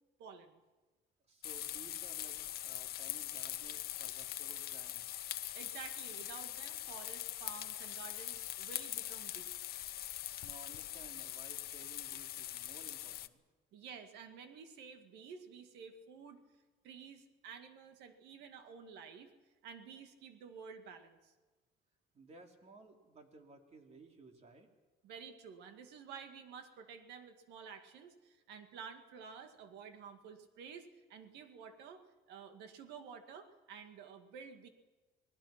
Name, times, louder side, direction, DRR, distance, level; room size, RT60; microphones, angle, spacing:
voice 1, 0.2-0.6 5.5-9.5 13.7-16.4 16.8-19.3 19.6-21.3 25.0-34.7, right 6 dB, 85° right, 7 dB, 2.1 m, -51 dB
voice 2, 1.3-2.4 2.6-5.0 10.4-13.4 22.1-24.7, right 3 dB, 40° right, 4 dB, 3.3 m, -57 dB
sound 1, 1.4-13.3, left 14 dB, 65° left, 0.8 m, -42 dB
27.5 x 19.0 x 5.9 m, 1.2 s
cardioid pair, 110°, 17 cm